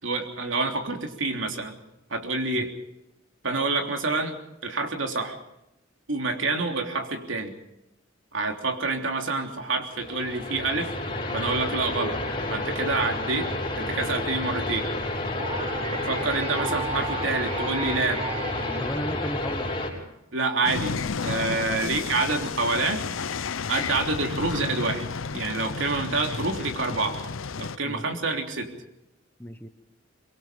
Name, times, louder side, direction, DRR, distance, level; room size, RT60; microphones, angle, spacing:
voice 1, 0.0-1.8 2.1-2.7 3.4-4.4 4.6-5.4 6.1-7.6 8.3-10.9 11.3-12.2 12.5-14.9 15.9-18.3 20.3-23.0 23.7-25.1 25.3-27.2 27.6-28.7, right 3 dB, 70° right, 4 dB, 3.3 m, -27 dB
sound 1, 9.9-19.9, left 2 dB, 30° left, 6.0 m, -30 dB
sound 2, 15.4-19.6, right 4 dB, 30° right, 1.8 m, -35 dB
voice 2, 18.8-19.7 21.8-22.0 27.8-28.3 29.4-29.7, equal, 10° left, 10 dB, 1.1 m, -34 dB
sound 3, 20.6-27.8, left 5 dB, 85° left, 0.7 m, -32 dB
24.5 x 22.5 x 5.2 m, 0.86 s
head